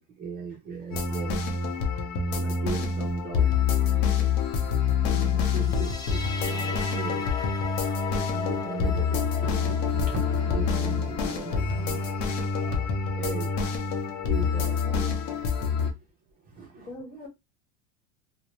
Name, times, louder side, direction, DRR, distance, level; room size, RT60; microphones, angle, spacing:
voice 1, 0.0-1.4 2.3-3.5 5.0-7.3 7.8-12.2 12.6-12.9 13.2-13.5 14.0-15.1 15.7-15.9 16.4-16.9, right 5 dB, 25° right, 0.6 m, -38 dB
sound 1, 0.9-15.9, left 6 dB, 55° left, 0.7 m, -26 dB
sound 2, 5.5-12.6, left 6 dB, 10° left, 0.3 m, -39 dB
voice 2, 14.8-15.1 16.8-17.3, left 1 dB, 30° left, 1.3 m, -42 dB
2.5 x 2.1 x 3.0 m
supercardioid pair, 135°, 37 cm